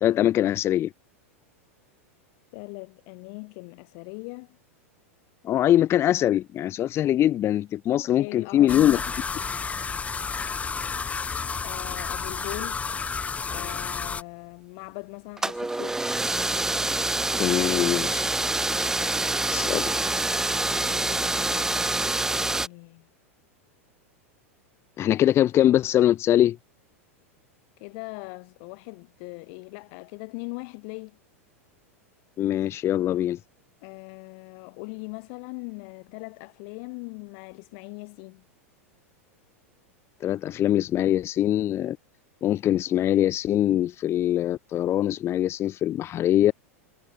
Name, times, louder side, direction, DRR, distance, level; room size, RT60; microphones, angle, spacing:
voice 1, 0.0-0.9 5.4-9.0 17.4-18.2 19.5-20.0 25.0-26.6 32.4-33.4 40.2-42.0 42.4-46.5, left 12 dB, 35° left, 1.0 m, -22 dB
voice 2, 2.5-4.6 8.2-9.0 11.6-12.9 13.5-16.1 20.6-23.1 27.8-31.2 33.8-38.4, left 40 dB or more, 55° left, 5.8 m, -40 dB
sound 1, 8.7-14.2, left 5 dB, 20° left, 2.7 m, -31 dB
sound 2, 15.4-22.7, right 2 dB, 5° right, 0.8 m, -26 dB
hypercardioid pair, 100°, 8 cm